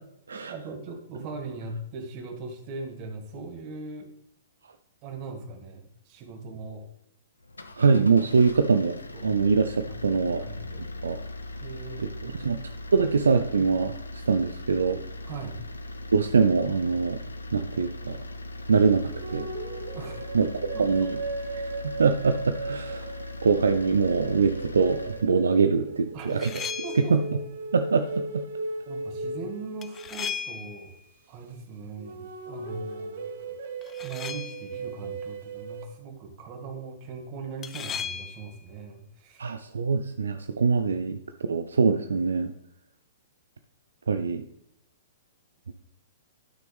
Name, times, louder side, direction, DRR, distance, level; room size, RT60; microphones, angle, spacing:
voice 1, 0.3-4.1 5.0-6.8 9.1-9.4 9.8-10.9 11.6-13.1 15.3-15.6 19.9-20.9 26.1-26.3 26.8-27.1 28.9-31.0 31.3-33.6 34.0-39.5, right 4 dB, 35° right, 3 dB, 1.9 m, -40 dB
sound 1, 7.4-25.3, left 1 dB, 80° left, 0.9 m, -39 dB
voice 2, 7.8-8.9 9.2-10.4 11.0-11.2 12.2-12.6 12.9-13.9 14.3-15.0 16.1-17.2 17.5-18.2 18.7-19.5 20.3-20.5 20.8-21.1 22.0-23.1 23.4-26.5 27.0-27.2 27.7-28.4 39.4-41.2 41.5-42.5 44.1-44.4, right 5 dB, 70° right, 8 dB, 0.5 m, -23 dB
sound 2, 19.2-30.6 32.0-35.9, right 3 dB, 55° right, 1.0 m, -37 dB
sound 3, 26.2-27.2 29.8-31.0 33.8-34.8 37.6-38.6, left 7 dB, 20° left, 0.6 m, -36 dB
12.0 x 6.1 x 3.4 m, 0.77 s
figure-of-eight pair, 110°, 0 cm